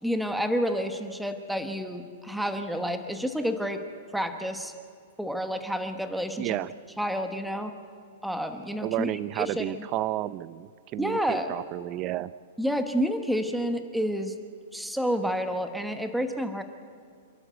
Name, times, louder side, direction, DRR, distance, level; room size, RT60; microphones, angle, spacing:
voice 1, 0.0-3.8 4.1-4.7 5.2-6.6 7.0-7.7 8.2-9.7 11.0-11.5 12.6-14.3 14.7-16.6, equal, ahead, 6 dB, 1.2 m, -29 dB
voice 2, 6.4-6.7 8.8-12.3, right 15 dB, 30° right, 18 dB, 0.5 m, -31 dB
28.5 x 11.5 x 8.0 m, 2.3 s
hypercardioid pair, 150°, 0 cm